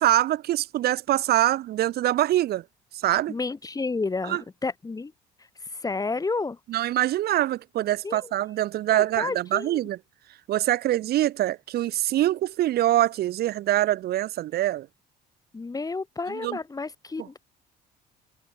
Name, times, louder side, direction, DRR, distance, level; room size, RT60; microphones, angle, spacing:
voice 1, 0.0-2.6 3.0-3.4 4.3-4.4 6.7-10.0 10.5-14.9 16.3-16.6, right 14 dB, 70° right, 2.3 m, -24 dB
voice 2, 3.3-5.1 5.7-6.6 8.0-8.3 8.9-9.8 15.5-17.4, left 3 dB, 20° left, 6.9 m, -31 dB
cardioid pair, 110°, 17 cm